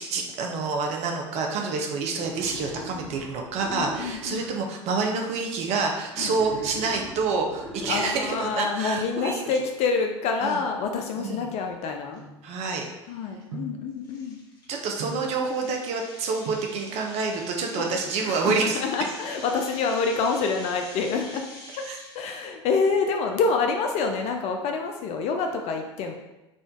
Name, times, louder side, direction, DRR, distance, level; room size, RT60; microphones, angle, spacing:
voice 1, 0.0-9.4 10.4-10.6 11.2-11.5 12.4-12.9 14.7-18.8 21.9-22.0, right 4 dB, 45° right, 2 dB, 0.6 m, -28 dB
Wild animals, 2.1-4.6 6.1-8.6, equal, 5° left, 0.9 m, -40 dB
voice 2, 3.7-4.4 6.2-6.3 7.9-12.2 13.1-14.4 17.8-17.9 18.2-21.5 21.8-21.9 22.1-26.1, left 4 dB, 45° left, 4 dB, 0.5 m, -27 dB
sound 1, 6.5-6.9 7.6-8.2 9.4-9.8 10.5-12.9 13.5-13.9 15.0-15.4 16.2-16.3 16.5-16.8 17.9-18.5 18.8-18.9 19.1-19.2 19.6-20.0 20.3-21.3 21.8-22.2 22.6-23.7 24.0-24.1, right 4 dB, 75° right, 0.9 m, -43 dB
sound 2, 12.2-12.3 12.8-13.0 13.4-13.5 14.0-22.4, left 1 dB, 25° left, 1.4 m, -45 dB
4.9 x 2.5 x 3.7 m, 1.0 s
figure-of-eight pair, 75°, 15 cm